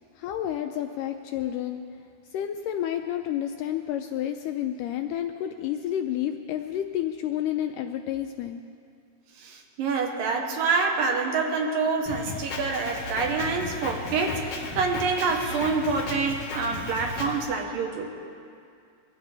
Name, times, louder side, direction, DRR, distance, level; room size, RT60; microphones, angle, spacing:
voice 1, 0.2-1.8 2.3-8.6, left 11 dB, 85° left, 5 dB, 1.9 m, -30 dB
voice 2, 9.4-18.1, right 4 dB, 75° right, 2 dB, 2.8 m, -27 dB
Drum kit, 12.1-17.4, left 3 dB, 50° left, 2.2 m, -35 dB
23.0 x 14.0 x 3.4 m, 2.4 s
omnidirectional pair, 4.2 m